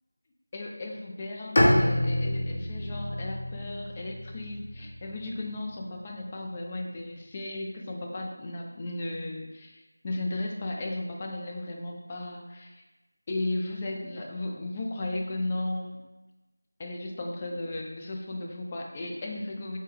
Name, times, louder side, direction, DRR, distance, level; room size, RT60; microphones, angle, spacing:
voice 1, 0.5-12.7 13.3-16.0 16.8-19.8, left 2 dB, 20° left, 0 dB, 0.4 m, -35 dB
Bowed string instrument, 1.6-5.5, left 1 dB, 45° left, 0.8 m, -27 dB
4.4 x 2.9 x 3.4 m, 1.1 s
figure-of-eight pair, 170°, 0 cm